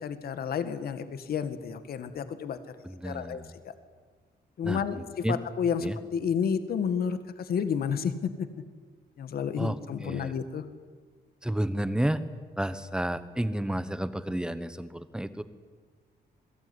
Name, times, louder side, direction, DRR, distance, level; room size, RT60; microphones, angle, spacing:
voice 1, 0.0-2.6 3.0-3.7 4.6-8.5 9.2-10.6, left 7 dB, 60° left, 11 dB, 1.9 m, -31 dB
voice 2, 2.8-3.5 4.6-5.4 5.8-6.0 9.6-10.3 11.4-12.2 12.6-15.4, right 1 dB, 5° right, 12 dB, 1.2 m, -31 dB
27.0 x 22.0 x 9.9 m, 1.5 s
wide cardioid pair, 180°, 17 cm